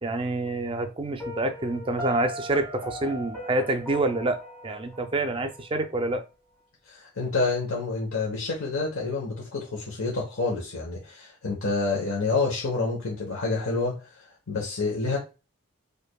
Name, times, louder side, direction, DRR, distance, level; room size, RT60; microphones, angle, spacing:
voice 1, 0.0-6.2, right 2 dB, 25° right, 0.4 m, -27 dB
Piano, 1.2-6.1, left 1 dB, 10° left, 1.2 m, -38 dB
voice 2, 6.9-15.2, left 3 dB, 70° left, 1.0 m, -28 dB
4.8 x 2.5 x 2.3 m
head